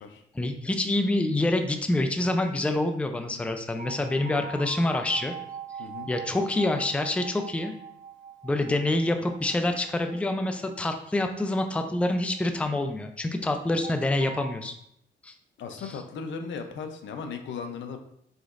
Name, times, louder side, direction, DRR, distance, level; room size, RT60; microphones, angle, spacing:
voice 1, 0.3-5.3 6.1-7.7 8.4-14.7 15.2-15.3 15.8-15.9, left 2 dB, 5° left, 6 dB, 0.4 m, -26 dB
sound 1, 3.8-12.8 13.8-14.5, right 6 dB, 40° right, 0.6 m, -43 dB
voice 2, 15.6-18.0, left 5 dB, 70° left, 6 dB, 0.6 m, -36 dB
5.1 x 3.6 x 2.5 m, 0.74 s
cardioid pair, 90°, 20 cm